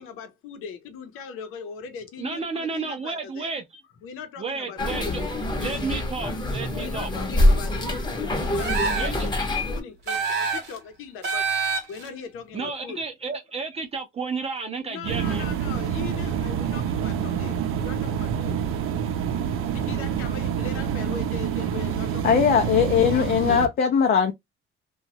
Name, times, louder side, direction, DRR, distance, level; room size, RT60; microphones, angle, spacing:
voice 1, 0.0-3.5 4.0-5.2 6.7-11.5 11.9-13.0 14.8-18.6 19.5-22.3 23.0-23.7, left 6 dB, 90° left, 0.8 m, -39 dB
voice 2, 2.2-3.7 4.4-5.2 5.6-7.1 9.0-9.3 12.5-15.5, right 4 dB, 30° right, 0.5 m, -32 dB
sound 1, 4.8-9.8, left 1 dB, 20° left, 0.8 m, -25 dB
sound 2, 8.6-9.3 10.1-10.8 11.2-12.1, right 5 dB, 55° right, 1.0 m, -26 dB
sound 3, 15.0-23.7, right 8 dB, 80° right, 0.6 m, -27 dB
voice 3, 22.2-24.3, left 7 dB, 45° left, 0.5 m, -20 dB
3.0 x 2.3 x 2.7 m
cardioid pair, 150°, 21 cm